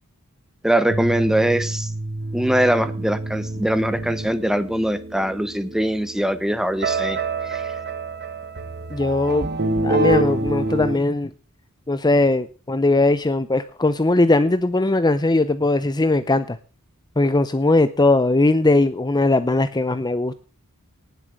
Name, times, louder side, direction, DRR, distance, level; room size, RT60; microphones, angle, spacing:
voice 1, 0.6-1.9 2.3-7.6, right 1 dB, ahead, 13 dB, 1.0 m, -22 dB
sound 1, 0.9-11.0, right 2 dB, 50° right, 1.4 m, -27 dB
voice 2, 8.9-11.3 11.9-16.6 17.2-20.4, left 2 dB, 20° left, 12 dB, 0.6 m, -19 dB
18.5 x 7.3 x 6.5 m, 0.39 s
head